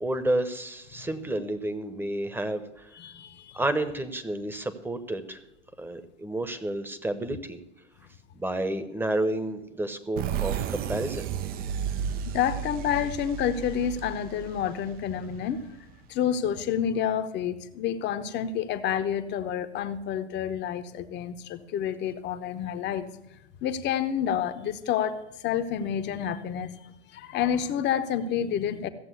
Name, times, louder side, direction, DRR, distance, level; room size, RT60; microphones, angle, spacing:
voice 1, 0.0-2.9 3.5-5.4 5.8-7.6 8.3-11.3, right 1 dB, 5° right, 10 dB, 1.1 m, -30 dB
voice 2, 2.9-3.6 12.2-15.6 16.1-23.1 23.6-25.2 25.4-26.7 27.1-28.9, left 9 dB, 30° left, 10 dB, 1.0 m, -29 dB
sound 1, 10.2-15.7, right 9 dB, 25° right, 0.6 m, -33 dB
15.0 x 7.7 x 8.0 m, 0.87 s
figure-of-eight pair, 95°, 36 cm